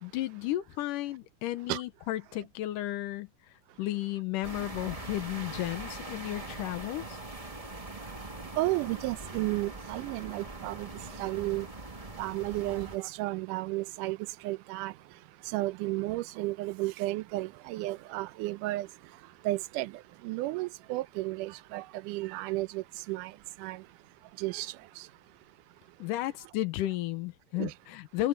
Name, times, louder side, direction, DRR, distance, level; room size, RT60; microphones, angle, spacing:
voice 1, 0.0-3.3 3.8-7.2 26.0-28.3, left 15 dB, 90° left, 2.5 m, -33 dB
sound 1, 4.4-13.0, right 2 dB, 25° right, 0.8 m, -42 dB
voice 2, 8.6-10.9 11.2-11.7 12.2-14.2 14.4-14.9 15.5-18.9 19.5-19.9 20.2-23.3 23.6-23.8 24.4-25.1 27.6-27.7, right 19 dB, 85° right, 2.1 m, -33 dB
omnidirectional pair, 3.7 m